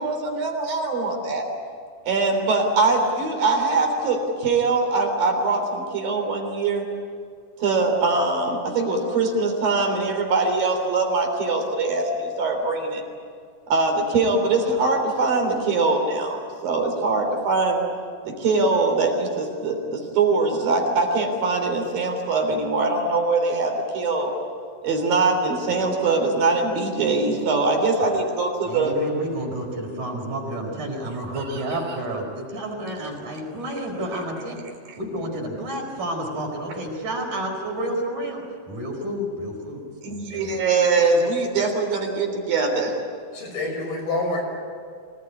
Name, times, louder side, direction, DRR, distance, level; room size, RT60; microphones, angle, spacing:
voice 1, 0.0-1.5 2.0-6.8 7.6-13.0 13.7-17.8 18.3-24.3 24.8-28.9 31.3-31.8 40.0-42.9, right 3 dB, 75° right, 3 dB, 5.3 m, -22 dB
voice 2, 28.6-34.6 35.0-40.5, right 1 dB, 55° right, 1 dB, 6.1 m, -30 dB
voice 3, 43.3-44.4, left 2 dB, 80° left, 1 dB, 7.4 m, -27 dB
25.5 x 19.5 x 9.8 m, 2.1 s
omnidirectional pair, 4.1 m